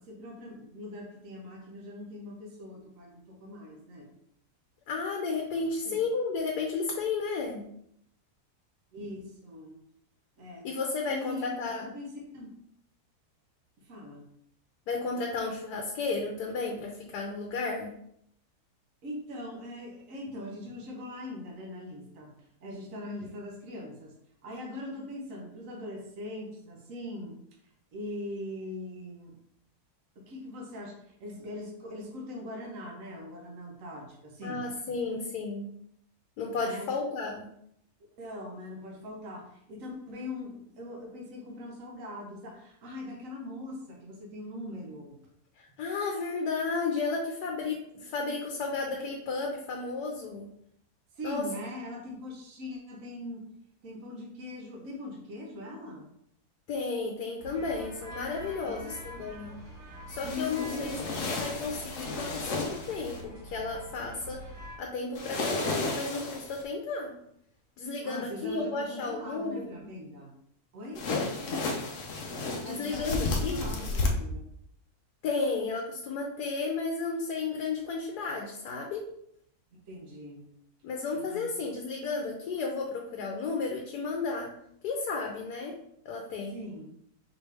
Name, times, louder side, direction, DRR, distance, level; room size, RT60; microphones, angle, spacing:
voice 1, 0.0-4.1 5.5-6.0 8.9-9.8 10.4-10.7 11.1-12.5 13.8-14.2 19.0-22.3 22.6-24.1 24.4-27.4 27.9-29.4 30.1-34.7 35.1-35.2 36.6-36.9 38.2-45.2 51.1-53.5 53.8-56.1 58.6-59.0 60.2-61.1 68.0-70.3 70.7-71.1 72.6-74.5 79.9-80.4 81.1-81.5 86.5-86.9, left 1 dB, 60° right, -1 dB, 1.4 m, -41 dB
voice 2, 4.9-7.6 10.6-11.9 14.9-17.9 34.4-35.7 36.4-37.5 45.6-50.5 51.2-51.5 56.7-59.6 60.1-60.9 61.4-64.4 64.8-67.1 67.8-69.9 71.1-71.3 72.6-73.6 75.2-79.0 80.8-84.5 84.8-85.7 86.0-86.6, left 4 dB, 85° left, 1 dB, 1.3 m, -33 dB
sound 1, 57.4-64.8, right 1 dB, 30° right, 1.4 m, -45 dB
sound 2, 60.1-63.2 65.1-66.6 70.9-74.1, left 3 dB, 60° left, 1.0 m, -33 dB
4.8 x 3.3 x 3.3 m, 0.71 s
omnidirectional pair, 1.7 m